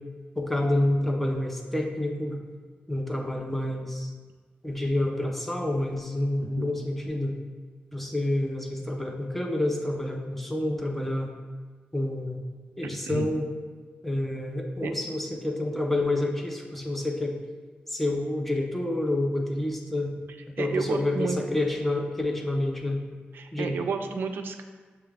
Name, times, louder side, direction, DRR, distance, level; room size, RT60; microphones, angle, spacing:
voice 1, 0.4-2.4 2.9-4.1 4.6-7.3 7.9-11.3 11.9-12.4 12.8-13.5 14.0-17.4 17.9-20.1 20.5-23.0 23.5-23.8, left 1 dB, 5° left, 1 dB, 0.4 m, -28 dB
voice 2, 6.4-6.7 12.8-13.3 14.8-15.0 20.6-21.4 23.3-24.6, right 5 dB, 75° right, 6 dB, 0.3 m, -32 dB
6.9 x 2.4 x 3.2 m, 1.5 s
wide cardioid pair, 175°, 4 cm